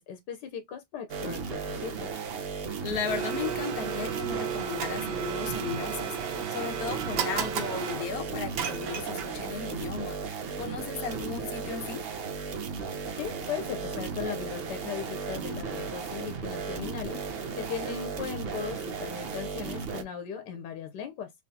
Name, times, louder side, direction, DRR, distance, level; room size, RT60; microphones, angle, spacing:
voice 1, 0.0-2.2 13.2-21.3, left 7 dB, 85° left, 1.4 m, -38 dB
sound 1, 1.1-20.0, right 5 dB, 60° right, 0.6 m, -35 dB
voice 2, 2.8-12.0, left 7 dB, 65° left, 1.3 m, -36 dB
Domestic sounds home sounds, 3.1-9.6, right 9 dB, 90° right, 1.4 m, -34 dB
3.7 x 3.1 x 2.7 m
omnidirectional pair, 1.8 m